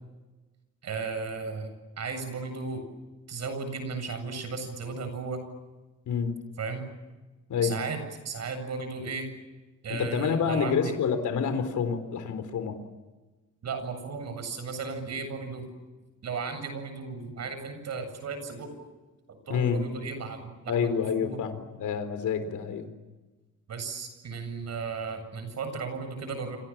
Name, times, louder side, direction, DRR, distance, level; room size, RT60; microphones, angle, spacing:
voice 1, 0.8-1.7 2.0-2.8 3.3-5.4 6.6-6.9 7.6-9.3 9.8-10.9 13.6-15.6 16.2-18.7 19.5-21.4 23.7-26.6, right 4 dB, 65° right, 9 dB, 7.8 m, -35 dB
voice 2, 9.9-12.8 19.5-19.8 20.7-22.9, left 6 dB, 90° left, 9 dB, 4.0 m, -28 dB
29.5 x 27.0 x 7.4 m, 1.2 s
wide cardioid pair, 145°, 29 cm